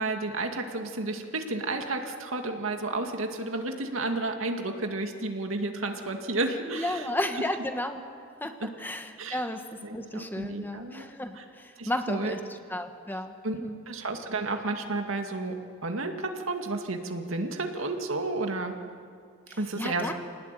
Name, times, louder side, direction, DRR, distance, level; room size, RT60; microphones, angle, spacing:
voice 1, 0.0-7.1 8.6-8.7 9.2-9.4 9.8-11.1 11.3-11.4 11.8-12.3 13.4-18.7 19.6-20.1, right 2 dB, 70° right, 4 dB, 2.2 m, -32 dB
voice 2, 6.7-8.0 8.4-9.7 9.9-12.4 12.7-13.3 13.6-13.8 19.5-20.1, left 1 dB, 10° left, 6 dB, 1.3 m, -33 dB
25.5 x 19.0 x 9.2 m, 2.2 s
head